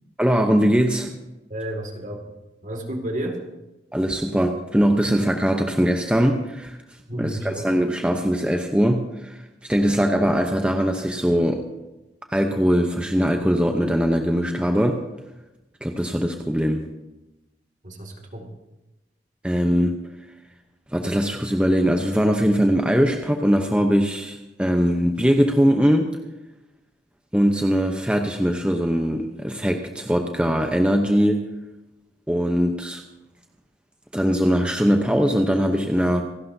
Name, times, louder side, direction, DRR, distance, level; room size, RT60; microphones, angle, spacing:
voice 1, 0.2-1.2 3.9-11.6 12.3-15.1 15.8-16.8 19.4-20.0 20.9-26.2 27.3-31.5 32.3-33.0 34.1-36.2, equal, 5° right, 3 dB, 0.8 m, -21 dB
voice 2, 1.5-2.3 2.6-3.4 7.1-7.7 17.8-18.5, right 1 dB, 45° right, 3 dB, 2.2 m, -31 dB
27.0 x 12.0 x 2.7 m, 1.0 s
head